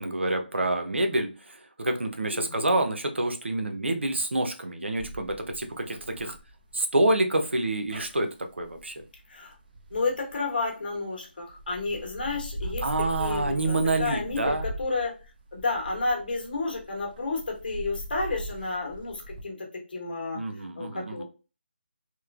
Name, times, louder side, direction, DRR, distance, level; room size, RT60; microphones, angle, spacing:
voice 1, 0.0-6.4 6.7-8.3 8.6-9.0 12.8-14.6 20.3-21.2, right 2 dB, 90° right, 6 dB, 0.6 m, -27 dB
voice 2, 2.3-2.7 9.3-9.5 9.9-15.1 15.5-20.4 20.8-21.2, left 3 dB, 55° left, 0 dB, 1.0 m, -31 dB
sound 1, 5.0-11.0 11.5-19.4, equal, 50° right, 0.7 m, -41 dB
3.0 x 2.1 x 2.3 m, 0.33 s
figure-of-eight pair, 165°, 6 cm